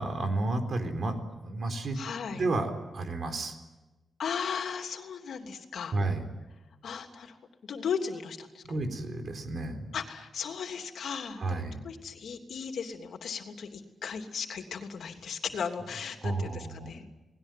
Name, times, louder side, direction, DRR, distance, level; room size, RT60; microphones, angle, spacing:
voice 1, 0.0-2.0 2.3-3.6 5.9-6.2 8.6-9.9 11.4-11.8 16.2-16.9, right 2 dB, 55° right, 6 dB, 4.3 m, -31 dB
voice 2, 1.9-2.4 4.2-6.0 6.8-7.3 7.6-8.6 9.9-17.1, left 6 dB, 80° left, 5 dB, 3.1 m, -36 dB
29.0 x 20.0 x 9.3 m, 1.1 s
wide cardioid pair, 105°, 0 cm